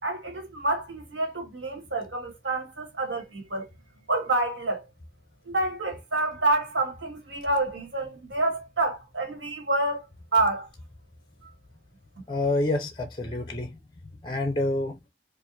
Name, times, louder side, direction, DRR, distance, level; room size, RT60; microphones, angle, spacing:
voice 1, 0.0-3.7 4.1-4.8 5.4-10.0 10.3-10.7, right 2 dB, 80° right, 1.7 m, -28 dB
voice 2, 12.3-13.7 14.2-15.0, left 2 dB, 25° left, 0.5 m, -27 dB
4.5 x 2.4 x 2.6 m
head